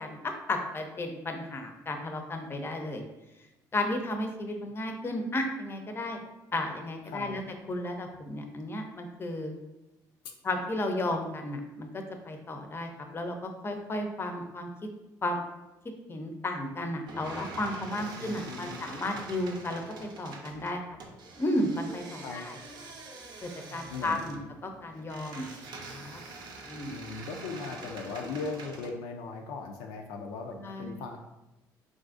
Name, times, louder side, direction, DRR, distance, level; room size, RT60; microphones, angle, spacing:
voice 1, 0.0-3.0 3.7-6.2 6.5-7.4 7.7-9.5 10.4-14.7 15.2-15.4 16.1-19.8 20.2-20.8 21.4-22.6 23.4-25.5 25.9-26.2 26.7-26.9 30.6-30.9, left 1 dB, 30° left, 5 dB, 0.5 m, -33 dB
sound 1, 17.1-28.9, right 3 dB, 60° right, 0.6 m, -45 dB
voice 2, 18.0-18.9 22.2-22.5 23.9-24.5 26.9-31.2, left 4 dB, 85° left, 3 dB, 0.3 m, -39 dB
3.8 x 2.4 x 2.5 m, 0.97 s
supercardioid pair, 75°, 8 cm